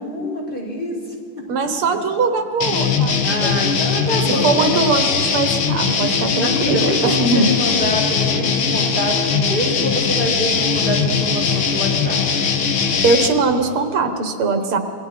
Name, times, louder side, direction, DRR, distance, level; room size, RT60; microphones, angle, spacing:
voice 1, 0.0-1.7 3.2-4.8 6.4-12.2, equal, 25° left, -3 dB, 5.0 m, -25 dB
voice 2, 1.5-3.6 4.4-7.5 13.0-14.8, right 4 dB, 85° right, 6 dB, 2.3 m, -20 dB
sound 1, 2.6-13.3, left 6 dB, 80° left, 2.2 m, -20 dB
27.0 x 22.5 x 4.5 m, 2.2 s
omnidirectional pair, 2.3 m